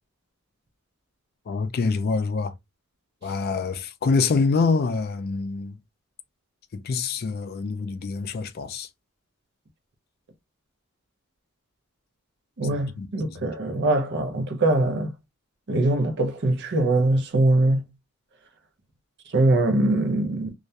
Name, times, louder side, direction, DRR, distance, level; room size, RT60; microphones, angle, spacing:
voice 1, 1.5-2.5 3.2-5.8 6.7-8.9 12.7-13.4, left 4 dB, 45° left, 0.4 m, -26 dB
voice 2, 12.6-15.1 15.7-17.8 19.3-20.5, right 2 dB, 55° right, 0.6 m, -22 dB
2.3 x 2.1 x 2.6 m
head